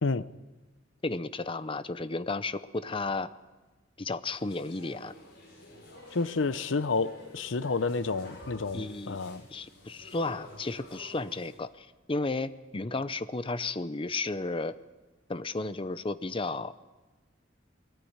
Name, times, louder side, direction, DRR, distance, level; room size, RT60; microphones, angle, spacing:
voice 1, 1.0-3.3 4.0-5.1 8.7-9.2 9.5-14.7 15.3-16.7, left 3 dB, 25° left, 14 dB, 0.6 m, -33 dB
sound 1, 4.3-11.6, left 1 dB, 55° left, 6.0 m, -50 dB
voice 2, 6.1-9.4, left 4 dB, 75° left, 15 dB, 0.7 m, -30 dB
21.5 x 14.5 x 8.8 m, 1.2 s
head